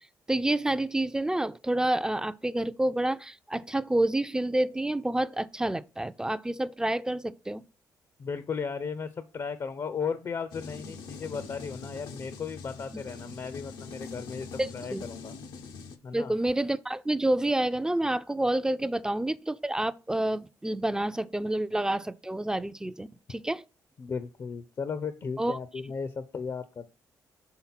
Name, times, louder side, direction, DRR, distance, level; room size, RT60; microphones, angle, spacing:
voice 1, 0.3-7.6 14.6-15.0 16.1-23.6 25.4-25.6, right 1 dB, 10° right, 0.4 m, -28 dB
voice 2, 8.2-15.3 16.0-16.3 24.0-26.9, left 5 dB, 45° left, 0.5 m, -35 dB
sound 1, 10.5-16.0, left 4 dB, 85° left, 0.7 m, -43 dB
5.8 x 3.7 x 5.7 m
cardioid pair, 80°, 8 cm